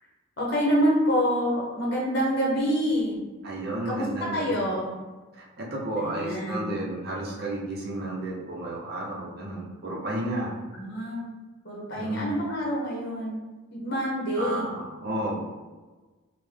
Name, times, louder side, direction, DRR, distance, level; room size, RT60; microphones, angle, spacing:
voice 1, 0.4-3.2 3.8-4.1 4.3-5.0 6.0-6.7 10.7-11.3 11.6-13.4 13.7-14.8, equal, 50° left, -4 dB, 0.9 m, -27 dB
voice 2, 3.4-4.8 5.4-10.5 11.9-12.3 14.3-15.4, right 1 dB, 45° right, -3 dB, 0.6 m, -32 dB
3.5 x 2.1 x 3.3 m, 1.3 s
head